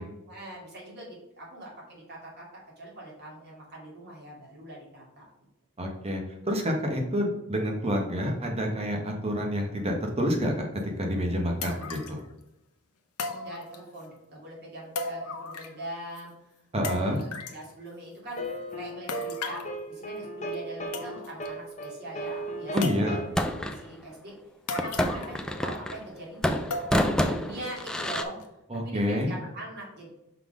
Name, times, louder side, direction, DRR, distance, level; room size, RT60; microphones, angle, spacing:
voice 1, 0.0-2.5 2.8-5.3 13.3-16.3 16.8-18.4 18.7-19.6 19.9-24.4 24.7-26.6 27.2-28.5 28.8-30.1, right 1 dB, 50° right, -5 dB, 2.6 m, -42 dB
voice 2, 5.8-10.7 11.0-12.2 16.7-17.2 22.7-23.2 28.7-29.3, equal, 25° right, 1 dB, 1.2 m, -28 dB
sound 1, 10.8-10.9 11.6-12.2 13.2-14.0 15.0-15.9 16.2-16.3 16.8-17.6 19.1-19.7 20.5-20.6 20.9-21.5 21.8-21.9 22.8-23.4 24.7-25.5 25.7-25.8 26.7-27.2 27.7-27.8 28.4-28.5, left 3 dB, 85° left, 0.8 m, -36 dB
sound 2, 18.4-23.3, right 1 dB, 35° left, 0.9 m, -36 dB
sound 3, 22.8-23.8 24.8-26.1 26.4-28.2, equal, 5° left, 0.4 m, -28 dB
5.8 x 4.0 x 5.0 m, 0.88 s
head